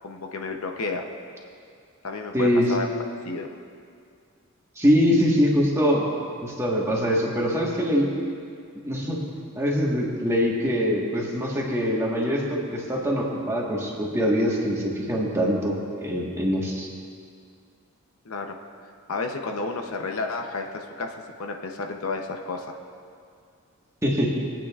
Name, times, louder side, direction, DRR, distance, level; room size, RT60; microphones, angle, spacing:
voice 1, 0.0-1.1 2.0-2.9 3.2-3.5 18.2-18.6 19.1-22.7, left 3 dB, 75° left, 3 dB, 0.8 m, -31 dB
voice 2, 2.3-2.7 4.8-6.1 6.4-8.1 8.8-9.2 9.5-16.9 24.0-24.3, equal, 15° right, -3 dB, 1.4 m, -23 dB
21.0 x 8.8 x 2.4 m, 2.3 s
head